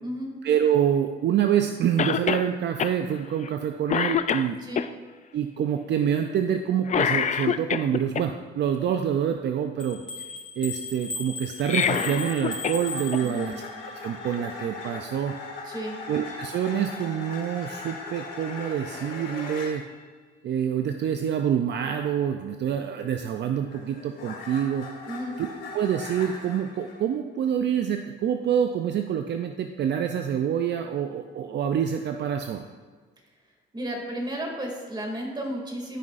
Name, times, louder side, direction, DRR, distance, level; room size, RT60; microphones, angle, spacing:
voice 1, 0.4-4.6 5.3-10.0 10.6-13.6 13.8-15.4 16.1-19.8 20.4-24.9 25.4-25.5 25.7-32.7, right 9 dB, 60° right, 5 dB, 0.5 m, -26 dB
Cough, 2.0-2.5 2.8-2.9 3.4-3.6 3.9-4.9 6.9-8.2 11.5-12.8 13.1-13.2 14.3-14.4, left 8 dB, 40° left, 0.4 m, -25 dB
sound 1, 9.8-13.8, left 2 dB, 5° left, 1.8 m, -36 dB
sound 2, 11.8-19.8 23.2-27.0, left 3 dB, 80° left, 1.9 m, -39 dB
voice 2, 13.2-13.6 15.7-16.0 25.1-25.3 33.7-36.0, equal, 20° right, -1 dB, 2.4 m, -33 dB
14.5 x 5.5 x 2.5 m, 1.5 s
cardioid pair, 90°, 20 cm